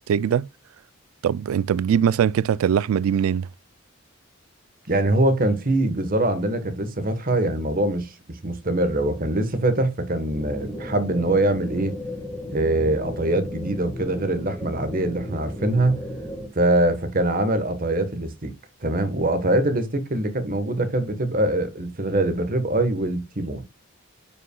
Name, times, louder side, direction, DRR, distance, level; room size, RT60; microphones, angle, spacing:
voice 1, 0.1-0.5 1.2-3.5, right 8 dB, 85° right, 0.3 m, -21 dB
voice 2, 4.9-12.0 12.5-16.0 16.5-18.5 18.8-23.6, right 1 dB, 40° right, 1.2 m, -23 dB
sound 1, 10.3-16.5, left 1 dB, 5° left, 1.6 m, -35 dB
9.3 x 5.6 x 2.2 m
head